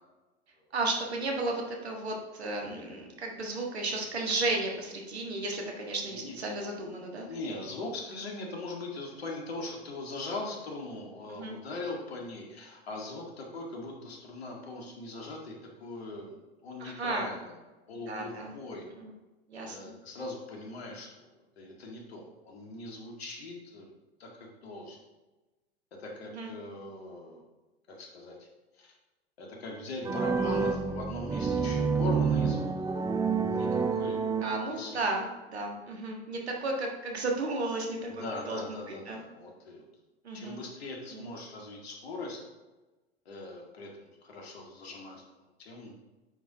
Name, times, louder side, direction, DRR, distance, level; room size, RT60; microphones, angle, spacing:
voice 1, 0.7-7.3 11.3-11.6 16.8-17.3 18.1-18.5 19.0-19.1 19.5-19.8 26.3-26.5 34.4-38.8 39.1-39.2 40.2-40.6 41.1-41.3, right 2 dB, 85° right, 1 dB, 1.6 m, -34 dB
voice 2, 7.3-17.6 17.9-18.9 19.7-21.3 21.6-23.9 24.2-25.0 26.0-27.4 27.9-28.5 28.8-28.9 29.4-33.0 33.5-34.3 34.7-35.1 38.1-39.9 40.3-42.4 43.3-45.9, left 2 dB, 75° left, 0 dB, 1.9 m, -40 dB
sound 1, 30.0-35.0, right 5 dB, 10° right, 0.6 m, -29 dB
9.1 x 4.8 x 3.6 m, 1.1 s
hypercardioid pair, 85°, 32 cm